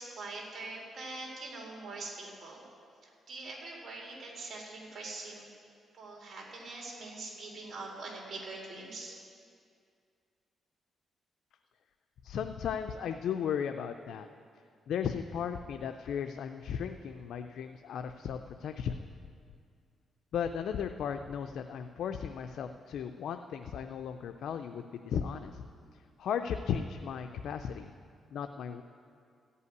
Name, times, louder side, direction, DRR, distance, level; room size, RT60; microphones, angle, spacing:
voice 1, 0.0-2.6 3.0-5.5 5.9-9.2, right 2 dB, 55° right, -3 dB, 3.6 m, -43 dB
voice 2, 12.2-14.3 14.9-19.0 20.3-25.6 26.2-27.9 28.3-28.8, left 7 dB, 80° left, 6 dB, 0.5 m, -35 dB
14.5 x 5.6 x 9.5 m, 2.2 s
cardioid pair, 105°, 0 cm